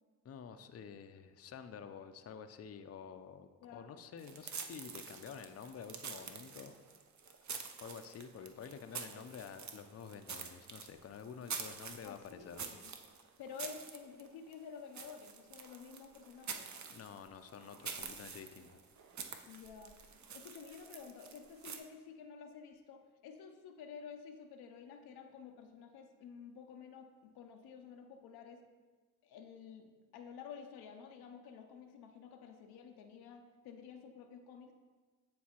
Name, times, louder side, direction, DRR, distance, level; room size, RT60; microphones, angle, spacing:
voice 1, 0.2-6.8 7.8-12.6 16.9-18.8, left 7 dB, 40° left, 8 dB, 0.5 m, -49 dB
voice 2, 3.6-4.0 12.0-12.9 13.4-16.7 19.4-20.0 20.3-28.6 29.2-34.7, left 6 dB, 80° left, 4 dB, 0.6 m, -51 dB
sound 1, 4.2-21.8, right 6 dB, 50° right, 0.7 m, -47 dB
9.4 x 3.7 x 2.9 m, 1.4 s
hypercardioid pair, 40°, 37 cm